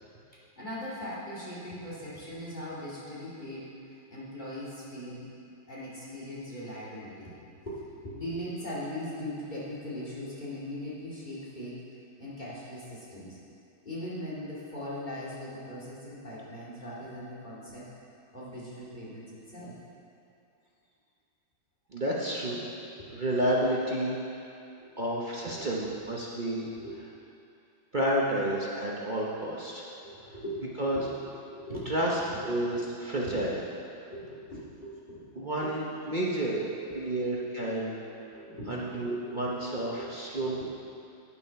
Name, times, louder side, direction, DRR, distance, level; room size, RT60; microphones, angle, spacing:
voice 1, 0.3-5.3 5.7-7.4 7.7-11.8 12.2-13.4 13.8-17.9 18.3-19.7 24.7-24.9 25.5-25.8 26.8-26.9 29.8-32.4 32.7-32.8 33.2-33.4 34.1-35.7 36.9-37.0 38.3-39.4 40.0-40.7, equal, 25° left, -9 dB, 2.3 m, -40 dB
voice 2, 21.9-22.6 23.1-24.4 25.0-26.7 27.9-29.9 30.8-31.0 31.9-33.6 35.4-36.6 36.9-38.0 38.3-38.4 38.7-40.6, right 1 dB, 40° right, -5 dB, 0.6 m, -30 dB
9.1 x 7.1 x 5.7 m, 2.7 s
omnidirectional pair, 2.1 m